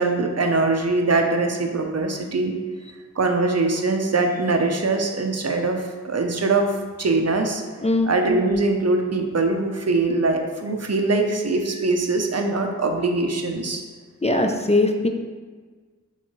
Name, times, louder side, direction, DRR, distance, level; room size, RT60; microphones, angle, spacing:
voice 1, 0.0-2.6 3.2-6.7 7.0-7.6 8.0-13.8, right 3 dB, 55° right, 4 dB, 0.6 m, -22 dB
voice 2, 14.2-15.1, left 2 dB, 20° left, 4 dB, 0.3 m, -20 dB
4.5 x 3.7 x 3.0 m, 1.5 s
wide cardioid pair, 45°, 31 cm